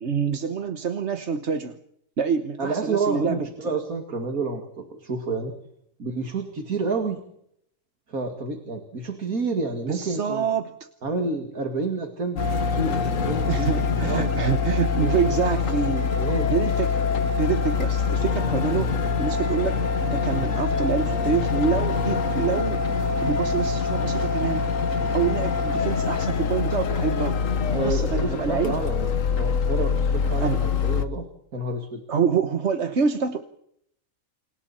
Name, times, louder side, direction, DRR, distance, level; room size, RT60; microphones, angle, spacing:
voice 1, 0.0-1.8 2.2-3.7 9.9-10.7 13.5-17.1 17.4-18.9 19.2-22.8 23.2-27.4 27.8-28.8 30.4-30.6 32.1-33.4, right 6 dB, 55° right, 8 dB, 1.4 m, -26 dB
voice 2, 2.6-5.5 6.0-7.2 8.1-10.4 11.0-12.4 12.7-13.8 14.1-14.3 15.0-15.2 16.2-16.5 27.7-29.1 29.4-31.3 31.5-32.0, right 3 dB, 85° right, 4 dB, 2.8 m, -29 dB
sound 1, 12.4-31.0, left 5 dB, 65° left, 1.6 m, -24 dB
29.5 x 27.5 x 4.4 m, 0.73 s
omnidirectional pair, 1.5 m